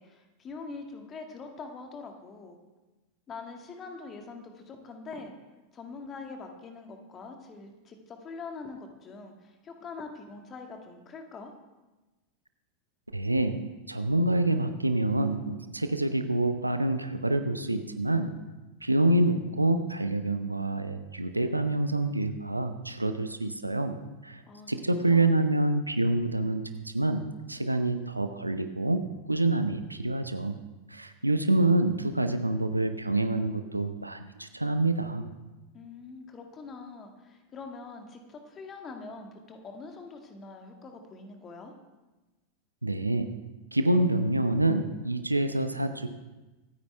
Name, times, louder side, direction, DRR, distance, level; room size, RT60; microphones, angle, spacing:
voice 1, 0.0-2.6 3.3-5.4 5.7-11.5 24.5-25.3 35.7-41.7, left 4 dB, 25° left, 4 dB, 2.0 m, -44 dB
voice 2, 13.1-13.6 13.9-18.3 18.8-24.0 24.2-24.4 24.7-27.2 27.5-29.0 29.3-30.6 30.9-35.3 42.8-43.3 43.7-46.1, right 2 dB, 85° right, 9 dB, 0.9 m, -27 dB
25.0 x 9.6 x 3.4 m, 1.1 s
figure-of-eight pair, 90°, 0 cm